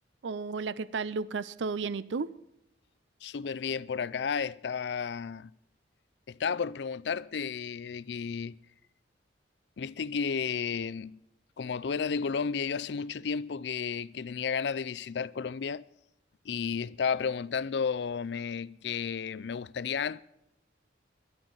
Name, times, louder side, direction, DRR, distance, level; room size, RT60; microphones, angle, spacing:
voice 1, 0.2-2.4, right 4 dB, 80° right, 0.5 m, -33 dB
voice 2, 3.2-5.5 6.3-8.6 9.8-11.2 11.6-15.9 16.4-20.2, left 6 dB, 65° left, 0.4 m, -32 dB
22.0 x 11.0 x 3.9 m
head